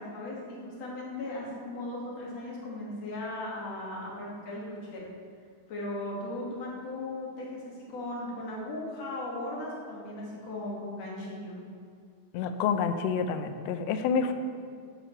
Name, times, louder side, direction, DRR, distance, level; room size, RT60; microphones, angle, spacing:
voice 1, 0.0-5.0 5.7-11.6, left 1 dB, 55° left, -5 dB, 3.3 m, -37 dB
voice 2, 12.3-14.3, left 6 dB, 80° left, 8 dB, 1.4 m, -28 dB
12.0 x 8.0 x 4.7 m, 2.2 s
omnidirectional pair, 3.6 m